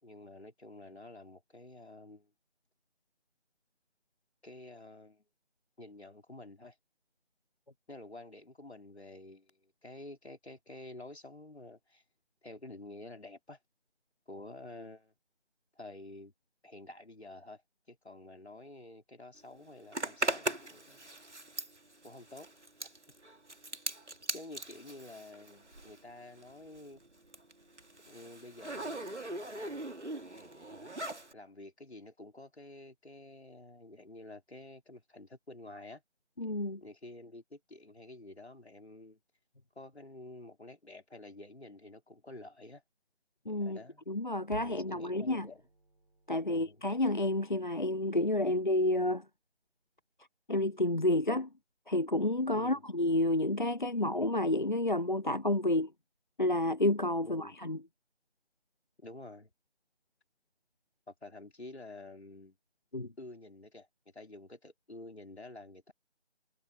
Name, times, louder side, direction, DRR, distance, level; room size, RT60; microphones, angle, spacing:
voice 1, 0.0-2.3 4.4-5.2 5.8-6.7 7.9-9.5 9.8-12.0 12.4-13.6 14.3-15.1 15.8-16.3 16.6-17.6 17.9-21.0 22.0-22.5 22.8-22.9 24.3-27.0 28.1-29.0 31.3-36.0 36.8-39.2 39.8-42.8 43.6-44.0 44.6-45.6 46.5-46.8 52.6-52.8 57.2-57.6 59.0-59.5 61.1-62.6 63.2-63.9 64.1-65.9, left 2 dB, 65° left, 3.8 m, -49 dB
Zipper (clothing), 19.9-26.1 26.4-31.3, right 1 dB, 75° right, 2.1 m, -39 dB
voice 2, 36.4-36.8 43.5-43.8 44.1-45.5 46.3-49.3 50.5-51.5 51.9-55.9 56.4-57.8 62.9-63.1, left 1 dB, 45° left, 0.6 m, -30 dB
sound 1, 44.5-48.8, right 2 dB, 50° right, 4.3 m, -53 dB
figure-of-eight pair, 165°, 35 cm